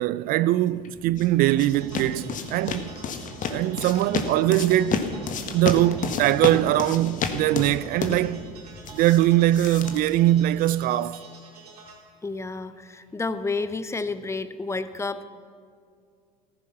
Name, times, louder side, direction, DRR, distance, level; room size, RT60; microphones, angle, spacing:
voice 1, 0.0-2.9 3.5-5.0 5.5-8.5 8.9-11.2, right 14 dB, 50° right, 0.4 m, -22 dB
sound 1, 0.8-10.9, left 5 dB, 45° left, 1.6 m, -32 dB
sound 2, 1.7-12.0, right 3 dB, 85° right, 2.6 m, -48 dB
voice 2, 12.2-15.3, left 3 dB, 15° left, 0.9 m, -30 dB
14.5 x 14.0 x 5.9 m
hypercardioid pair, 75°, 19 cm